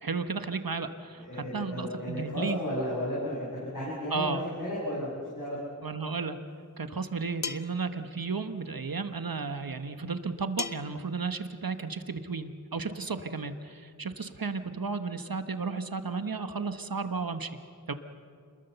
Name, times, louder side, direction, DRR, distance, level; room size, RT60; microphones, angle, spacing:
voice 1, 0.0-1.2 1.5-2.6 4.1-4.5 5.8-6.4 6.8-17.5 17.9-18.0, right 4 dB, 80° right, 9 dB, 1.2 m, -33 dB
voice 2, 1.2-5.1 5.3-5.6, left 1 dB, 70° left, -8 dB, 8.0 m, -33 dB
sound 1, 7.4-7.8 10.6-11.0, left 5 dB, 50° left, 0.7 m, -35 dB
27.5 x 21.5 x 7.0 m, 2.2 s
wide cardioid pair, 45°, 34 cm